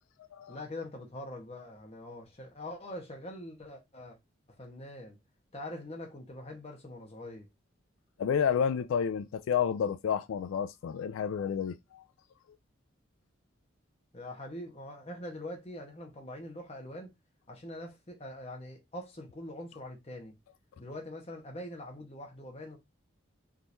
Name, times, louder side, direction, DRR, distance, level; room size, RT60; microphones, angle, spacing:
voice 1, 0.5-4.2 4.5-5.2 5.5-7.5 14.1-17.1 17.5-20.3 20.8-22.8, left 1 dB, 30° left, 1.0 m, -43 dB
voice 2, 8.2-12.0, left 7 dB, 85° left, 0.3 m, -30 dB
3.7 x 3.0 x 2.6 m
head